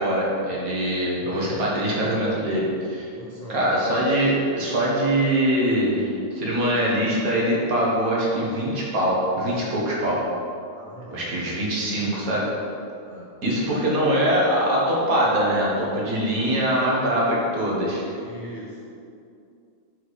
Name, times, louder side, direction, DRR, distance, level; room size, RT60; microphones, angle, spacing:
voice 1, 0.0-3.1 3.5-10.2 11.1-12.5 13.4-18.0, right 1 dB, 80° right, -5 dB, 1.8 m, -23 dB
voice 2, 3.1-3.6 10.7-11.5 13.0-13.3 18.1-19.0, equal, 25° left, -7 dB, 1.3 m, -41 dB
6.8 x 4.1 x 4.8 m, 2.5 s
omnidirectional pair, 1.5 m